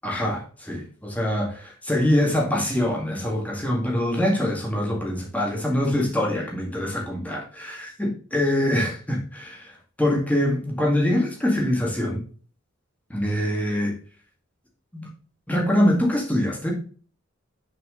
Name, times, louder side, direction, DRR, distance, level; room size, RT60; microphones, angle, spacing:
voice 1, 0.0-12.2 13.1-14.0 14.9-15.1 15.5-16.7, left 1 dB, 10° left, -2 dB, 1.9 m, -24 dB
6.4 x 4.9 x 3.7 m, 0.40 s
head